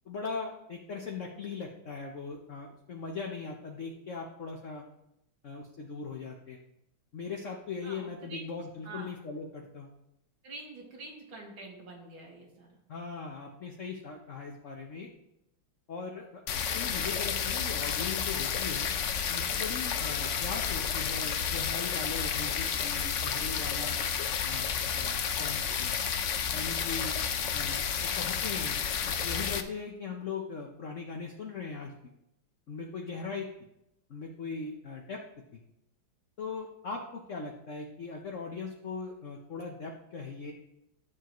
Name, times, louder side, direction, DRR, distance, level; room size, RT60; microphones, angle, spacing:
voice 1, 0.0-4.8 5.4-6.6 7.1-9.9 12.9-15.1 15.9-18.9 19.3-24.0 24.4-25.9 26.5-27.1 27.5-28.8 29.2-31.9 32.7-33.5 34.1-35.2 35.5-35.6 36.4-40.5, left 4 dB, 50° left, 1 dB, 1.0 m, -39 dB
voice 2, 7.8-8.5 8.8-9.1 10.4-12.8, right 2 dB, 85° right, -1 dB, 3.0 m, -46 dB
sound 1, 16.5-29.6, left 7 dB, 90° left, 0.6 m, -31 dB
13.0 x 7.2 x 3.1 m, 0.85 s
omnidirectional pair, 2.2 m